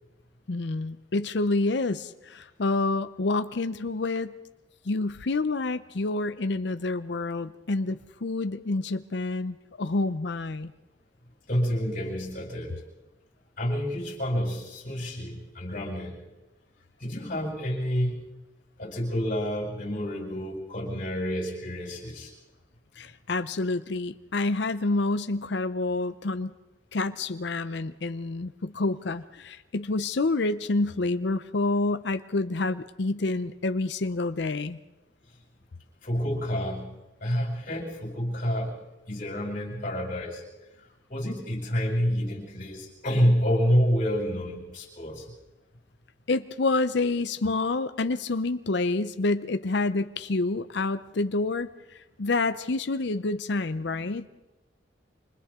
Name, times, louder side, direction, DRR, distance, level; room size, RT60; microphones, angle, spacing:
voice 1, 0.5-4.3 4.9-10.7 23.0-26.5 26.9-34.8 46.3-54.3, left 3 dB, 60° left, 11 dB, 0.6 m, -28 dB
voice 2, 11.5-12.8 13.6-16.2 17.0-18.2 18.8-22.3 36.0-36.9 37.2-38.8 39.1-40.4 41.1-45.3, equal, 40° left, -1 dB, 6.9 m, -28 dB
28.5 x 26.5 x 3.7 m, 1.1 s
head